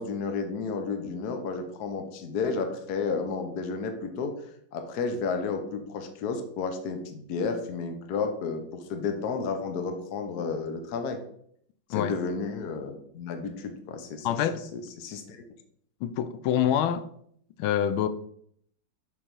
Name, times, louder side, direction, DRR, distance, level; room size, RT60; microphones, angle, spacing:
voice 1, 0.0-4.3 4.7-11.2 11.9-14.3 14.7-15.4, left 4 dB, 60° left, 1.3 m, -32 dB
voice 2, 14.2-14.6 16.0-17.1 17.6-18.1, left 10 dB, 85° left, 1.4 m, -26 dB
7.1 x 5.2 x 5.3 m
omnidirectional pair, 2.3 m